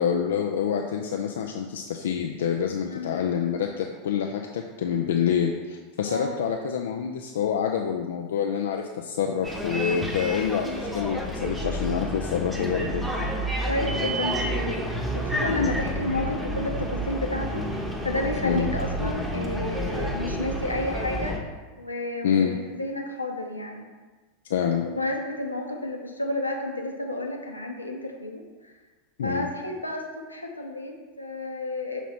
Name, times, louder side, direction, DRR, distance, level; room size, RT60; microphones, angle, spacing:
voice 1, 0.0-13.0 15.5-15.8 18.4-18.7 22.2-22.6 24.5-24.9 29.2-29.5, left 7 dB, 60° left, 2 dB, 0.4 m, -27 dB
Bus, 9.4-21.4, equal, 5° right, 0.8 m, -30 dB
voice 2, 13.6-21.4 21.8-23.9 24.7-28.7 29.2-32.0, left 1 dB, 85° left, 1 dB, 0.8 m, -31 dB
5.9 x 4.0 x 4.5 m, 1.3 s
figure-of-eight pair, 85°, 0 cm